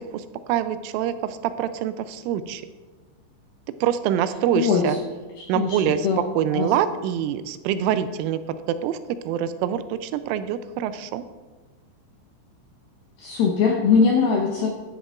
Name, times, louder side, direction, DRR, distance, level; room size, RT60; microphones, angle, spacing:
voice 1, 0.1-2.6 3.8-5.0 5.5-9.0 9.3-11.2, right 10 dB, 85° right, 11 dB, 3.1 m, -25 dB
voice 2, 4.6-5.0 5.5-6.2 6.5-6.7 13.2-14.7, left 5 dB, 85° left, 0 dB, 2.1 m, -21 dB
13.0 x 10.0 x 2.4 m, 1.3 s
omnidirectional pair, 5.6 m